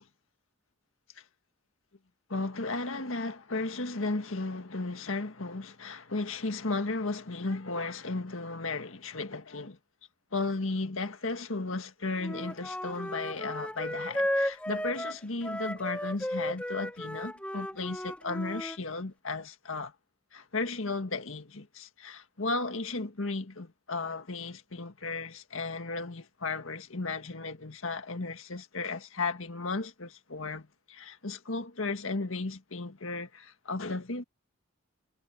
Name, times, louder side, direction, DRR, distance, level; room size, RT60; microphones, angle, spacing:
voice 1, 2.3-9.8 10.3-19.9 20.3-34.2, left 3 dB, 80° left, 1.7 m, -35 dB
Wind instrument woodwind instrument, 12.2-18.8, left 1 dB, 5° left, 1.7 m, -34 dB
head